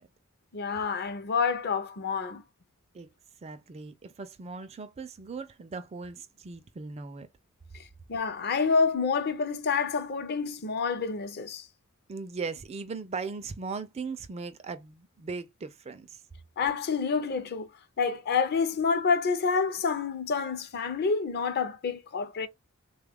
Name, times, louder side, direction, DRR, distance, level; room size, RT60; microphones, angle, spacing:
voice 1, 0.5-2.4 8.1-11.7 16.6-17.7 18.0-22.5, left 5 dB, 45° left, 0.5 m, -28 dB
voice 2, 3.4-7.3 12.1-16.2, right 4 dB, 30° right, 0.4 m, -38 dB
3.5 x 2.3 x 3.4 m
head